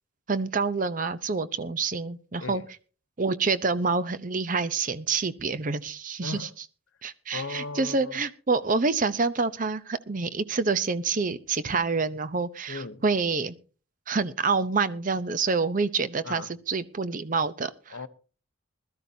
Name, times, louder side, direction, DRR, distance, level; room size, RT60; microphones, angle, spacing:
voice 1, 0.3-2.6 3.2-6.5 7.0-13.5 14.1-18.0, right 4 dB, 40° right, 0.7 m, -27 dB
voice 2, 7.3-8.1 12.7-13.0 16.2-16.5 17.9-18.1, left 3 dB, 75° left, 0.8 m, -36 dB
20.5 x 12.5 x 2.7 m
head